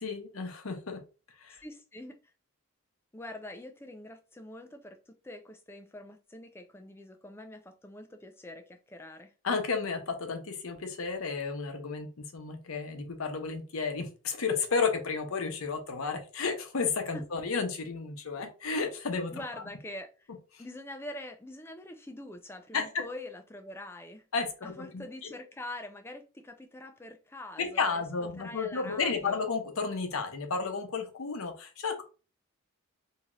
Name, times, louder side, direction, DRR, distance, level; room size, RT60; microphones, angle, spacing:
voice 1, 0.0-1.0 1.4-1.6 9.4-12.1 12.3-19.4 22.7-23.0 24.3-25.0 27.6-32.0, left 4 dB, 80° left, 0.7 m, -32 dB
voice 2, 1.6-2.3 3.1-9.3 17.1-17.2 19.3-20.3 20.6-24.2 24.6-29.5, left 1 dB, 10° left, 0.3 m, -45 dB
2.7 x 2.4 x 3.0 m
head